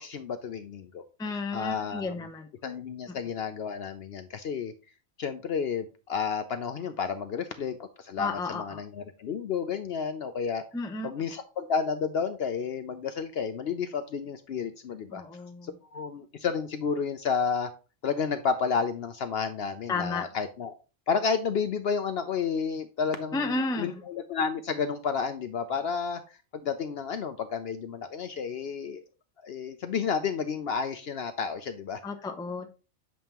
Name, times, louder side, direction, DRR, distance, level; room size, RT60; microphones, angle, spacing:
voice 1, 0.0-1.0 1.3-2.3 2.6-4.7 5.2-10.6 11.0-15.2 15.6-17.7 18.0-20.7 21.1-26.2 26.5-29.0 29.4-32.0, left 6 dB, 60° left, 9 dB, 0.7 m, -31 dB
voice 2, 1.2-2.5 8.2-8.8 10.7-11.1 15.1-15.7 19.9-20.3 23.3-24.0 32.0-32.7, left 3 dB, 5° left, 4 dB, 0.4 m, -32 dB
7.5 x 5.4 x 2.9 m, 0.33 s
omnidirectional pair, 1.4 m